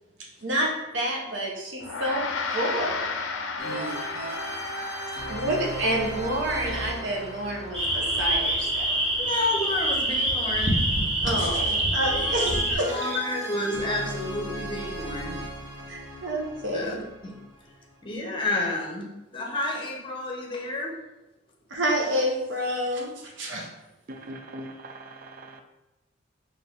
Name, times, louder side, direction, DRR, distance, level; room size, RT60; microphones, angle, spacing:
voice 1, 0.2-3.2 5.3-9.0 11.2-13.2 15.9-17.0 21.7-23.7, right 1 dB, 70° right, 0 dB, 0.8 m, -29 dB
Gong, 1.8-11.4, left 4 dB, 70° left, 0.4 m, -36 dB
voice 2, 3.6-4.2 9.2-10.8 12.5-12.6 12.8-15.4 16.7-16.9 17.2-17.4 18.0-21.0, left 2 dB, 25° left, 0 dB, 0.7 m, -30 dB
sound 1, 3.6-9.5 12.0-17.8, right 1 dB, 85° right, 1.3 m, -37 dB
sound 2, 7.7-12.7, right 1 dB, 30° right, 0.9 m, -25 dB
voice 3, 24.1-25.6, right 1 dB, 50° right, 5 dB, 0.4 m, -41 dB
4.1 x 2.6 x 3.5 m, 0.98 s
head